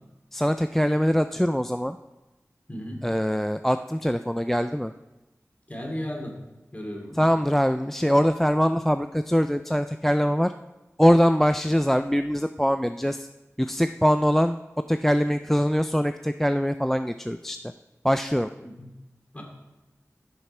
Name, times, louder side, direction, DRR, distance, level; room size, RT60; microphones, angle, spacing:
voice 1, 0.3-2.0 3.0-4.9 7.2-10.5 11.0-13.3 13.6-14.6 14.9-17.6 18.0-18.5, equal, 5° left, 10 dB, 0.3 m, -23 dB
voice 2, 2.7-3.0 5.7-6.3 6.7-7.3 18.6-18.9 19.3-19.4, equal, 30° left, 0 dB, 2.6 m, -35 dB
15.0 x 6.8 x 4.3 m, 1.0 s
wide cardioid pair, 70°, 5 cm